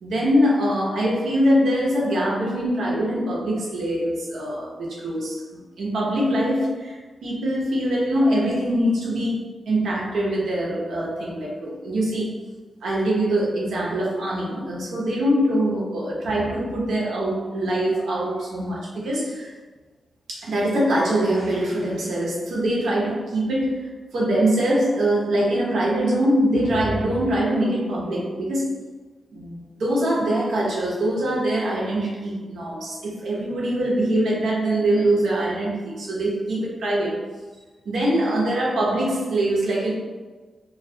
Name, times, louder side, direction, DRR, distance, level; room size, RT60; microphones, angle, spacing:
voice 1, 0.0-12.3 12.8-19.5 20.3-28.7 29.3-37.2 37.9-39.9, right 1 dB, 90° right, -5 dB, 0.6 m, -23 dB
2.2 x 2.1 x 2.6 m, 1.3 s
wide cardioid pair, 110°, 0 cm